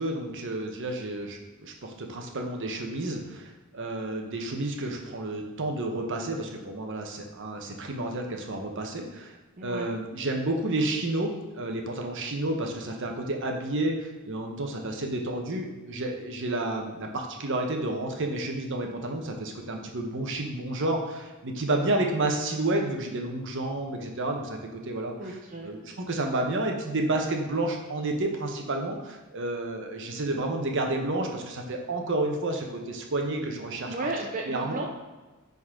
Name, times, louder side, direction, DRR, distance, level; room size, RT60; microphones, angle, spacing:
voice 1, 0.0-9.3 9.6-25.1 25.6-33.9 34.5-34.8, right 2 dB, 60° right, 3 dB, 1.0 m, -30 dB
voice 2, 9.6-9.9 25.2-25.7 33.9-34.9, right 2 dB, 40° right, 0 dB, 0.6 m, -34 dB
9.5 x 4.1 x 3.8 m, 1.2 s
head